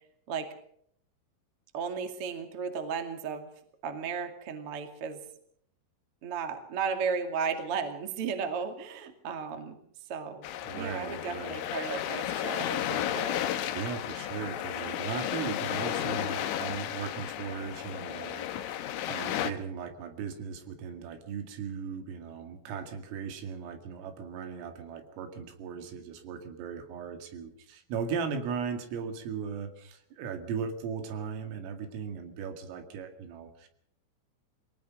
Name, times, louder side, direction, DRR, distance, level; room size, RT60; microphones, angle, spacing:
voice 1, 1.7-3.5 3.8-5.2 6.2-9.7 10.1-10.5 10.7-13.4, right 6 dB, 40° right, 6 dB, 2.3 m, -34 dB
sound 1, 10.4-19.5, left 11 dB, 75° left, 3.6 m, -33 dB
voice 2, 10.6-11.7 13.7-33.7, right 6 dB, 80° right, 6 dB, 4.8 m, -37 dB
23.0 x 19.0 x 6.3 m, 0.67 s
omnidirectional pair, 5.8 m